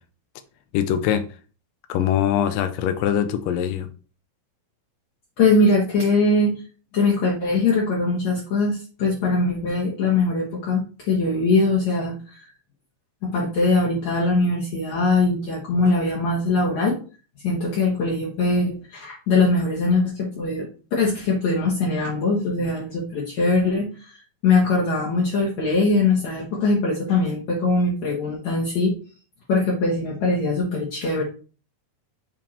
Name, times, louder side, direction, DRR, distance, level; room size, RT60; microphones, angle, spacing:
voice 1, 0.7-1.3 1.9-3.9, left 10 dB, 80° left, 2.0 m, -22 dB
voice 2, 5.4-6.6 6.9-12.4 13.2-17.0 17.4-20.7 21.0-28.9 29.5-31.2, left 3 dB, 60° left, 2.2 m, -21 dB
7.6 x 3.6 x 4.2 m
omnidirectional pair, 4.5 m